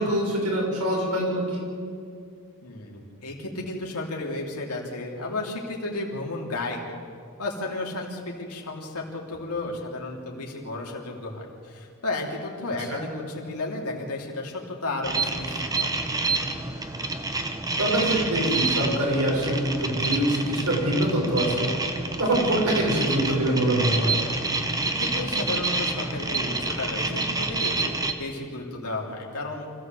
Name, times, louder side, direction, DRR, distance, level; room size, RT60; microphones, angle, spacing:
voice 1, 0.0-1.6 12.9-13.0 17.8-21.7 22.2-24.2, right 1 dB, 80° right, -1 dB, 6.4 m, -24 dB
voice 2, 2.6-6.8 7.4-16.0 24.8-29.7, left 2 dB, 85° left, -1 dB, 3.5 m, -33 dB
sound 1, 15.0-28.1, right 3 dB, 15° right, 1.3 m, -28 dB
26.0 x 15.0 x 8.0 m, 2.3 s
head